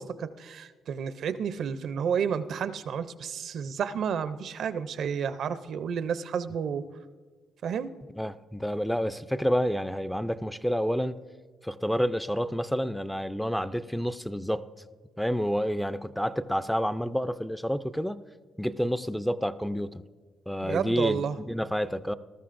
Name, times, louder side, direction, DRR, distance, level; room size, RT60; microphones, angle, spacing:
voice 1, 0.0-6.9 7.6-7.9 20.6-21.4, right 7 dB, 65° right, 12 dB, 0.5 m, -31 dB
voice 2, 8.2-11.2 11.6-14.6 15.2-18.2 18.6-20.0 20.5-22.1, equal, ahead, 13 dB, 0.4 m, -29 dB
19.5 x 13.0 x 2.5 m, 1.4 s
cardioid pair, 90°, 0 cm